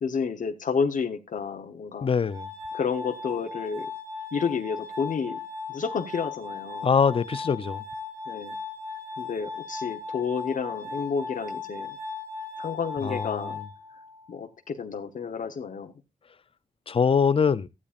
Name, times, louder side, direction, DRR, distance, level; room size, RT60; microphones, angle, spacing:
voice 1, 0.0-2.1 2.7-3.9 4.3-5.4 5.7-6.9 8.3-8.5 9.2-12.0 12.6-13.6 14.3-15.9, left 6 dB, 60° left, 1.1 m, -30 dB
voice 2, 2.0-2.5 6.8-7.8 13.0-13.6 16.9-17.7, left 6 dB, 40° left, 0.6 m, -23 dB
Glass, 2.3-14.3, left 4 dB, 70° right, 5.8 m, -37 dB
15.0 x 8.5 x 2.5 m
wide cardioid pair, 145°, 15 cm